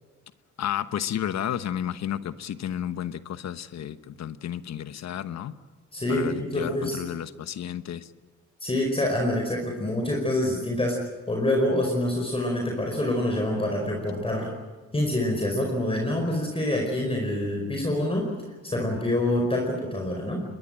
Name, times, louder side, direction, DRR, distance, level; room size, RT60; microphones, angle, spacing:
voice 1, 0.6-5.5 6.1-8.1, left 10 dB, 60° left, 13 dB, 1.1 m, -32 dB
voice 2, 5.9-7.0 8.6-11.0 11.3-14.5 14.9-18.3 18.6-20.4, left 1 dB, 20° left, 1 dB, 4.9 m, -26 dB
22.0 x 21.0 x 8.8 m, 1.4 s
cardioid pair, 90°, 30 cm